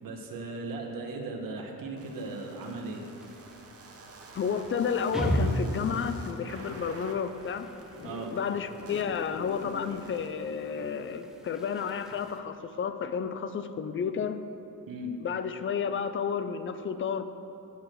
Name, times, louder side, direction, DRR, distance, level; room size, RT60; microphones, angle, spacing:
voice 1, 0.0-3.0 8.0-8.3 14.9-15.1, right 2 dB, 70° right, 3 dB, 1.1 m, -37 dB
sound 1, 2.0-10.3, right 3 dB, 40° right, 0.8 m, -50 dB
sound 2, 3.2-12.4, equal, ahead, 0.7 m, -37 dB
voice 2, 4.3-7.7 8.3-14.4 15.2-17.2, left 7 dB, 35° left, 10 dB, 0.4 m, -31 dB
Zipper (clothing), 5.9-6.6 7.9-8.3 8.7-9.8, left 2 dB, 75° left, 2.2 m, -47 dB
8.2 x 4.9 x 7.4 m, 2.9 s
wide cardioid pair, 135°, 35 cm